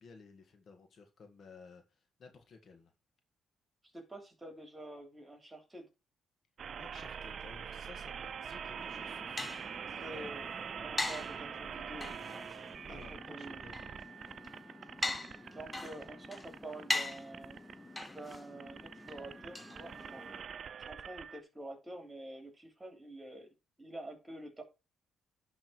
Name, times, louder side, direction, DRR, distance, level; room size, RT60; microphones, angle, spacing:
voice 1, 0.0-2.9 6.8-9.8 10.1-10.3 12.9-14.0, left 4 dB, 55° left, 1.8 m, -56 dB
voice 2, 3.9-5.9 10.0-12.1 12.9-13.0 13.3-13.7 15.0-15.2 15.5-17.6 18.1-20.3 20.9-23.5 23.8-24.6, right 1 dB, 20° right, 3.3 m, -48 dB
sound 1, 6.6-21.4, right 7 dB, 55° right, 0.5 m, -45 dB
sound 2, 8.8-20.4, left 2 dB, 15° left, 0.9 m, -42 dB
11.0 x 3.8 x 4.7 m
cardioid pair, 90°, 0 cm